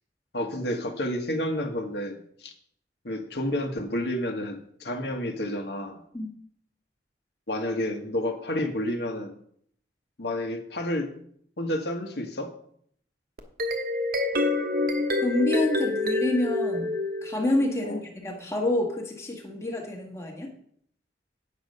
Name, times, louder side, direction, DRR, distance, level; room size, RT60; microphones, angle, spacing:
voice 1, 0.3-2.5 3.0-6.0 7.5-9.3 10.2-11.1 11.6-12.5 17.8-18.0, left 1 dB, 65° left, 4 dB, 1.3 m, -30 dB
sound 1, 13.4-17.7, left 2 dB, 50° right, 1.1 m, -27 dB
voice 2, 15.2-16.9 17.2-20.5, left 1 dB, 15° left, 0 dB, 1.5 m, -28 dB
9.0 x 6.5 x 5.4 m, 0.65 s
head